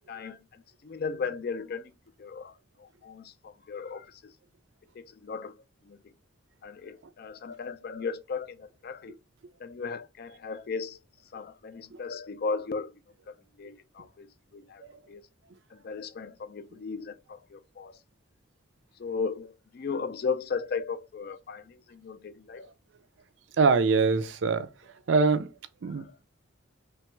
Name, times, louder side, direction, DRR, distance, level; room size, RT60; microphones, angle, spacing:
voice 1, 0.1-1.9 2.2-4.3 4.9-5.5 5.9-6.0 6.6-9.2 9.6-11.0 11.3-12.9 13.3-14.3 14.5-14.8 15.1-15.2 15.7-18.0 19.0-22.7 25.9-26.0, left 5 dB, 50° left, 0.3 m, -36 dB
voice 2, 23.6-24.7 25.1-25.5 25.8-26.2, right 4 dB, 65° right, 0.4 m, -23 dB
3.3 x 2.3 x 3.0 m
head